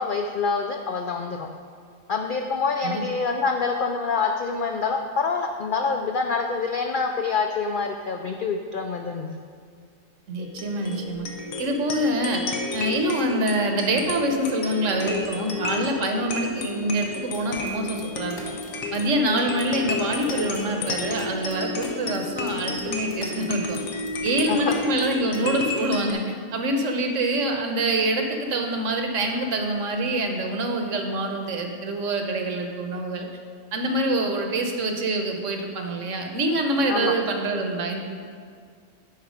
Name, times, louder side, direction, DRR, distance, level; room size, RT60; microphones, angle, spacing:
voice 1, 0.0-1.5 2.1-9.3 24.5-24.8 36.9-37.1, left 4 dB, 70° left, 3 dB, 0.5 m, -26 dB
voice 2, 10.3-11.3 11.6-18.6 18.9-23.8 24.2-33.3 33.7-38.0, right 1 dB, 70° right, 4 dB, 1.2 m, -25 dB
sound 1, 10.4-26.1, left 3 dB, 85° left, 1.3 m, -32 dB
sound 2, 17.3-24.8 25.0-25.7, left 2 dB, 50° left, 1.3 m, -47 dB
10.0 x 4.5 x 5.0 m, 2.1 s
omnidirectional pair, 1.4 m